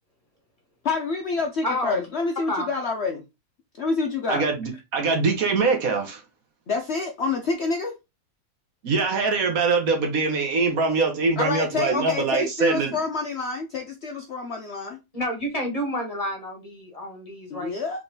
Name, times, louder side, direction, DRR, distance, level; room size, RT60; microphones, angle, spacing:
voice 1, 0.8-3.2 3.8-4.4 6.7-7.9 11.4-15.0 17.5-18.0, left 4 dB, 55° left, 0.8 m, -27 dB
voice 2, 1.6-2.1 2.5-2.7 15.1-17.7, equal, 25° left, 1.7 m, -29 dB
voice 3, 4.3-6.2 8.8-12.9, right 4 dB, 65° right, 1.4 m, -23 dB
3.7 x 3.6 x 3.9 m
omnidirectional pair, 1.7 m